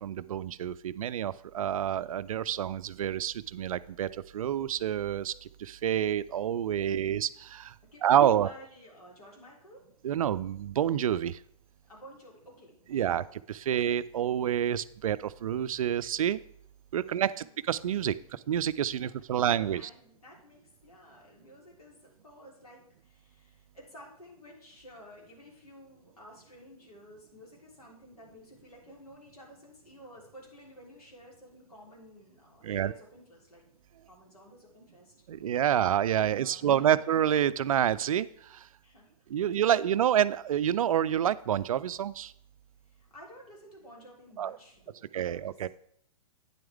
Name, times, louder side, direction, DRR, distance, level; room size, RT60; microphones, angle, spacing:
voice 1, 0.0-7.7 8.0-8.5 10.0-11.4 12.9-16.4 16.9-19.9 32.6-32.9 35.3-38.6 39.3-42.3 44.4-44.5 45.1-45.7, right 10 dB, 65° right, 16 dB, 0.4 m, -28 dB
voice 2, 6.8-7.2 7.9-9.9 11.8-13.3 17.0-17.6 19.3-33.6 34.1-35.1 35.4-35.6 36.3-37.0 38.8-40.0 42.9-45.4, equal, 80° left, -2 dB, 3.6 m, -53 dB
9.2 x 7.7 x 3.5 m, 0.68 s
figure-of-eight pair, 115°, 19 cm